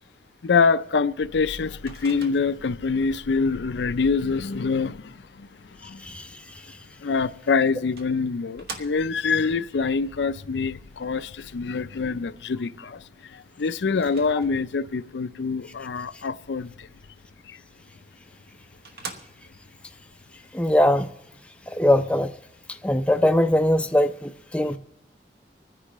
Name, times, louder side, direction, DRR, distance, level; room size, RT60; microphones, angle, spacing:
voice 1, 0.4-6.1 7.0-16.9 17.5-17.6, left 4 dB, 90° left, 0.5 m, -25 dB
Microwave oven, 1.9-2.8 7.1-7.2 8.0-9.3 13.9-14.8 18.0-18.1 18.5-18.6 18.8-19.7, right 3 dB, 60° right, 1.1 m, -42 dB
voice 2, 20.5-21.1 21.7-22.3 22.8-24.8, left 1 dB, 5° left, 0.4 m, -21 dB
25.5 x 10.0 x 3.1 m
head